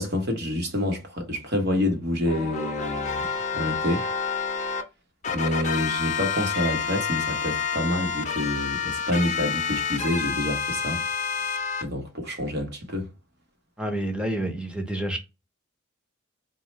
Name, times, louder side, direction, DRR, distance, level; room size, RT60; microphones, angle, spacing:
voice 1, 0.0-3.3 3.5-4.1 5.3-11.0 11.8-13.1, left 1 dB, 50° right, 1.0 m, -27 dB
sound 1, 2.3-4.8 5.2-11.8, left 6 dB, 35° left, 0.6 m, -28 dB
voice 2, 13.8-15.2, right 1 dB, 5° right, 0.7 m, -28 dB
4.2 x 2.3 x 3.0 m
head